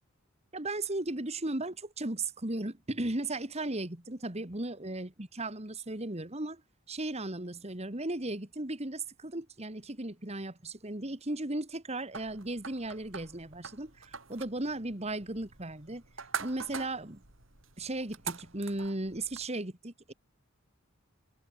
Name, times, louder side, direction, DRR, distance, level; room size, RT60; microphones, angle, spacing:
voice 1, 0.5-6.6 6.9-16.0 16.4-17.2 17.8-20.1, right 2 dB, 30° right, 2.3 m, -36 dB
sound 1, 12.1-19.5, right 6 dB, 75° right, 4.7 m, -44 dB
head